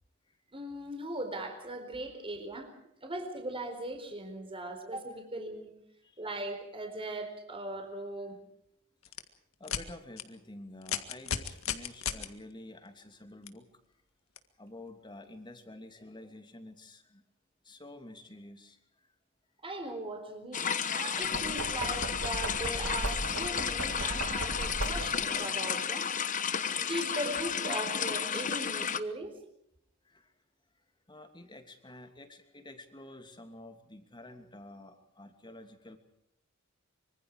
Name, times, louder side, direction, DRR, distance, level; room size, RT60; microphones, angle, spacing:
voice 1, 0.5-2.7 3.0-5.7 6.2-8.4 19.6-26.1 26.7-29.3, right 1 dB, 25° right, 5 dB, 4.4 m, -39 dB
sound 1, 9.0-9.2 9.6-9.8 10.2-10.3 10.8-12.3 13.5-13.6 14.4-14.5, left 8 dB, 70° left, 1.9 m, -34 dB
voice 2, 9.6-13.7 14.6-17.2 17.6-18.8 30.0-30.3 31.1-36.0, left 1 dB, 20° left, 6 dB, 2.8 m, -49 dB
sound 2, 20.5-29.0, left 7 dB, 40° left, 1.1 m, -32 dB
Knock, 21.2-25.3, right 1 dB, 70° right, 2.8 m, -37 dB
25.5 x 25.0 x 4.9 m, 0.75 s
head